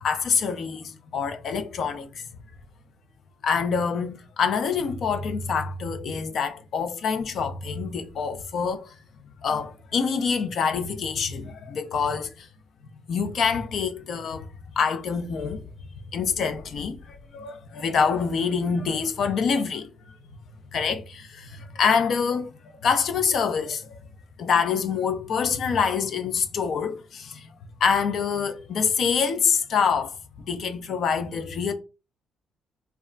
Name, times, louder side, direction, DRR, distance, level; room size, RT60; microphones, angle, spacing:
voice 1, 0.0-2.2 3.4-8.9 9.4-12.5 13.1-14.5 14.8-15.6 16.1-19.9 20.7-22.5 22.8-24.0 24.4-27.5 27.8-30.2 30.5-31.7, left 6 dB, 60° left, 0.4 m, -26 dB
2.3 x 2.0 x 3.7 m
cardioid pair, 90°, 0 cm